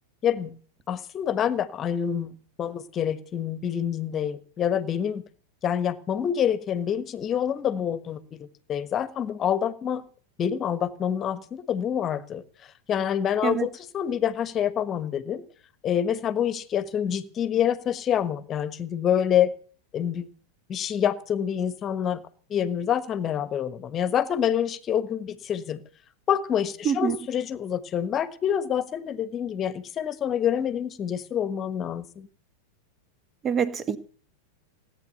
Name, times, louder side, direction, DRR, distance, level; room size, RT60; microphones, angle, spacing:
voice 1, 0.2-0.6 0.9-5.2 5.6-10.0 10.4-12.4 12.9-15.4 15.8-19.5 19.9-20.3 20.7-22.2 22.5-25.8 26.3-32.3, left 9 dB, 25° left, 1.4 m, -27 dB
voice 2, 26.8-27.2 33.4-34.0, right 7 dB, 25° right, 1.6 m, -25 dB
17.5 x 9.5 x 8.3 m
figure-of-eight pair, 90°, 0 cm